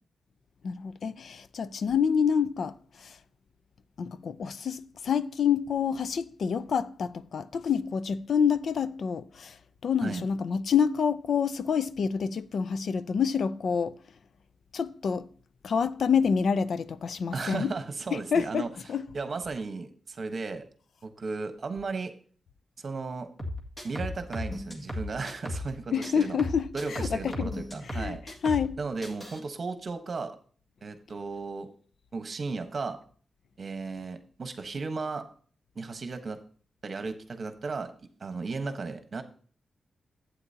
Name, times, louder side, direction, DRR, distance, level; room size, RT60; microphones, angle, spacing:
voice 1, 0.6-3.2 4.0-9.6 9.8-13.9 14.7-15.3 15.6-17.7 18.1-19.1 25.9-27.6 27.9-28.2 28.4-28.8, left 6 dB, 65° left, 0.4 m, -27 dB
voice 2, 17.3-18.7 19.1-20.6 21.0-22.1 22.8-23.3 23.8-26.4 26.7-28.2 28.8-30.4 30.8-31.7 32.1-33.0 33.6-35.2 35.7-36.4 36.8-39.2, right 4 dB, 45° right, 1.1 m, -35 dB
sound 1, 23.4-25.7 26.0-28.7 29.0-29.4, left 1 dB, 25° left, 1.9 m, -36 dB
11.5 x 8.4 x 2.8 m
wide cardioid pair, 130°, 0 cm